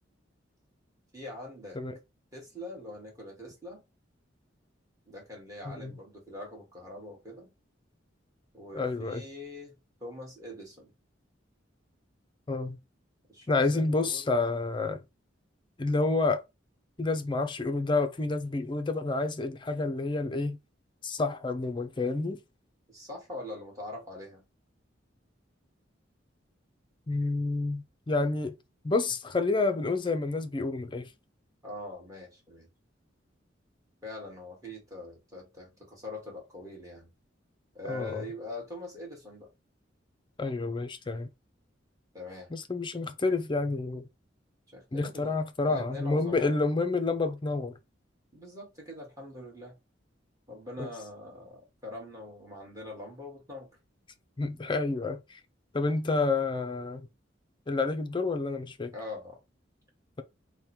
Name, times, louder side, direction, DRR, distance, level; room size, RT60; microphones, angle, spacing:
voice 1, 1.1-1.8 2.3-3.8 5.1-7.5 8.5-9.7 10.0-10.9 13.3-14.4 22.9-24.4 31.6-32.7 34.0-37.1 37.8-39.5 42.1-42.5 44.7-46.5 48.3-49.7 50.5-53.7 58.9-59.4, left 1 dB, 20° right, 1.7 m, -43 dB
voice 2, 8.7-9.2 12.5-12.8 13.5-15.0 15.8-16.4 17.0-20.6 21.0-22.4 27.1-28.5 28.8-31.1 37.9-38.2 40.4-41.3 42.5-44.0 44.9-47.7 50.8-50.9 54.4-55.4 55.7-57.0 57.7-58.9, left 3 dB, 25° left, 0.5 m, -29 dB
3.5 x 2.2 x 4.3 m
head